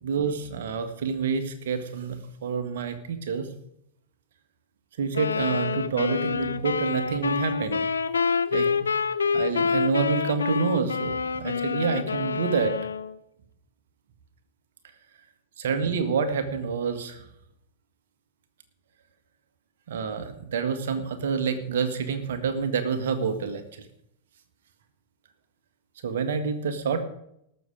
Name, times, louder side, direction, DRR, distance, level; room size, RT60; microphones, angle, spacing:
voice 1, 0.0-3.5 5.0-7.9 8.5-8.9 9.3-12.7 15.6-17.2 19.9-23.6 26.0-27.0, right 5 dB, 60° right, 8 dB, 1.8 m, -28 dB
sound 1, 5.1-13.1, left 5 dB, 75° left, 0.6 m, -27 dB
19.5 x 6.9 x 5.1 m, 0.75 s
figure-of-eight pair, 90°, 0 cm